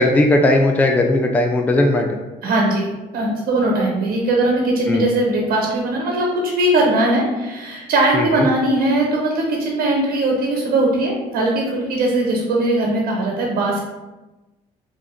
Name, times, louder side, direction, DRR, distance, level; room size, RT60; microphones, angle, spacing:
voice 1, 0.0-2.2 4.9-5.1 8.1-8.5, left 1 dB, 10° left, 3 dB, 0.3 m, -17 dB
voice 2, 2.4-13.8, right 1 dB, 65° right, -2 dB, 0.9 m, -19 dB
3.2 x 2.4 x 3.6 m, 1.1 s
cardioid pair, 110°, 17 cm